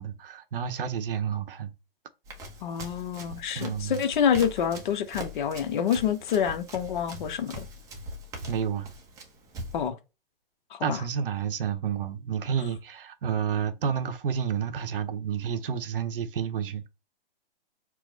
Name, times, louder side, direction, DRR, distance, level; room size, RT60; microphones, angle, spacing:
voice 1, 0.0-1.7 3.5-4.0 8.5-8.9 10.8-16.8, right 7 dB, 60° right, 0.7 m, -30 dB
Run, 2.3-9.9, equal, 10° right, 0.5 m, -42 dB
voice 2, 2.6-7.7 9.7-10.0 10.7-11.0, left 8 dB, 55° left, 0.7 m, -27 dB
4.6 x 2.0 x 4.3 m
hypercardioid pair, 140°, 30 cm